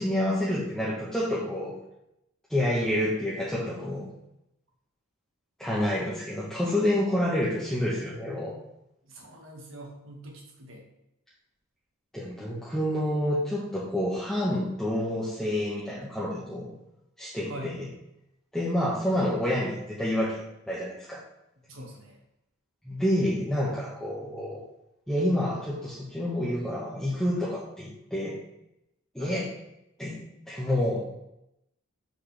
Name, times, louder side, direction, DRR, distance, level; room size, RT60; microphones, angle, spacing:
voice 1, 0.0-1.7 2.5-4.1 5.6-8.6 12.1-16.8 17.2-17.9 18.5-20.4 20.7-21.2 22.8-24.6 25.1-28.4 29.1-29.5 30.0-30.2 30.5-31.1, left 1 dB, ahead, -8 dB, 1.2 m, -28 dB
voice 2, 9.1-10.8 17.5-17.7 21.7-22.2 29.2-29.4, right 1 dB, 65° right, 0 dB, 1.9 m, -43 dB
7.1 x 6.1 x 3.4 m, 0.84 s
head